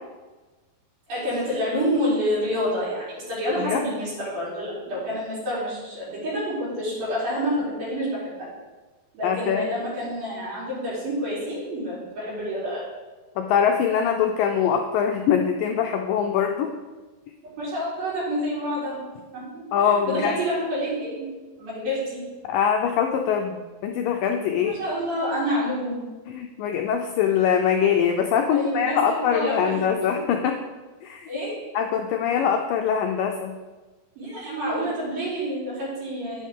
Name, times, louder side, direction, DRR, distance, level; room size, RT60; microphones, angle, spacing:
voice 1, 1.1-8.2 9.1-12.8 17.6-19.1 19.3-21.3 21.6-22.2 24.6-26.0 28.5-29.8 30.1-30.2 31.3-31.5 34.2-36.5, equal, 65° right, -10 dB, 5.2 m, -28 dB
voice 2, 9.2-9.6 13.4-16.7 19.7-20.3 22.5-24.7 26.3-30.6 31.0-31.3 31.8-33.5, left 8 dB, 80° left, 4 dB, 2.0 m, -23 dB
10.5 x 9.2 x 3.7 m, 1.3 s
omnidirectional pair, 4.5 m